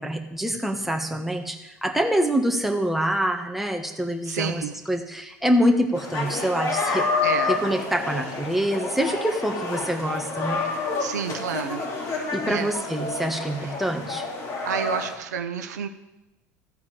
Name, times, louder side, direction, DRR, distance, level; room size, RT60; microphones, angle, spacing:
voice 1, 0.0-7.1 7.5-10.6 12.3-14.3, equal, ahead, 3 dB, 1.4 m, -25 dB
voice 2, 4.2-4.8 7.2-7.6 11.0-11.9 12.5-12.7 13.6-13.8 14.7-15.9, right 7 dB, 80° right, 8 dB, 0.7 m, -30 dB
sound 1, 5.9-15.1, left 3 dB, 40° left, 2.8 m, -29 dB
13.5 x 4.5 x 7.4 m, 1.0 s
hypercardioid pair, 80°, 9 cm